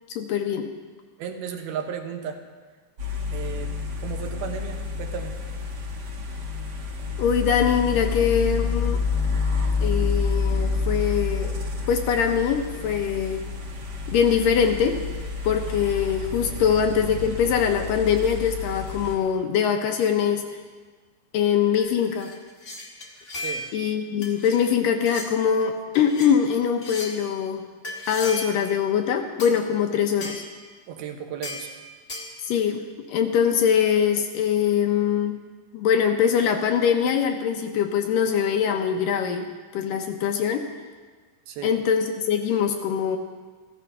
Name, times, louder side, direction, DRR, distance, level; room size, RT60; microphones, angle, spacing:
voice 1, 0.2-0.7 7.2-9.0 9.8-11.5 11.9-13.4 14.1-15.0 15.4-20.4 21.3-22.3 23.7-27.6 28.1-30.4 32.5-35.4 35.7-39.5 39.7-40.7 41.6-43.2, left 7 dB, 75° left, 5 dB, 2.3 m, -23 dB
voice 2, 1.2-2.4 3.3-3.8 4.0-5.4 16.5-16.8 23.4-23.7 30.9-31.7 41.5-41.8, right 8 dB, 80° right, 4 dB, 3.0 m, -34 dB
sound 1, 3.0-19.1, left 4 dB, 60° right, 1.0 m, -29 dB
sound 2, 21.8-23.9 24.2-24.6 25.0-25.3 25.9-26.3 26.8-27.2 27.8-28.7 29.4-29.6 30.2-30.5 31.4-31.7 32.1-32.4, left 1 dB, 35° left, 1.2 m, -36 dB
15.5 x 14.0 x 5.6 m, 1.5 s
omnidirectional pair, 4.4 m